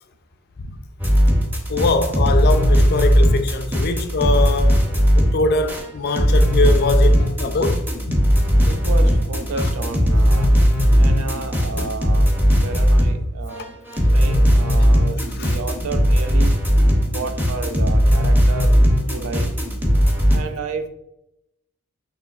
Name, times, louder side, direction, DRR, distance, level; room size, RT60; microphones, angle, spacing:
sound 1, 1.0-13.2 13.5-20.4, equal, 10° right, 0.6 m, -17 dB
voice 1, 1.7-4.8 5.1-8.2 11.0-11.2 11.8-11.9 12.6-12.7 15.4-15.6, left 3 dB, 45° left, 0.4 m, -23 dB
voice 2, 8.6-10.5 11.0-12.3 12.6-13.8 14.1-16.5 17.0-18.8 19.1-19.5 20.3-20.9, right 4 dB, 70° right, 0.5 m, -31 dB
6.4 x 3.0 x 2.3 m
head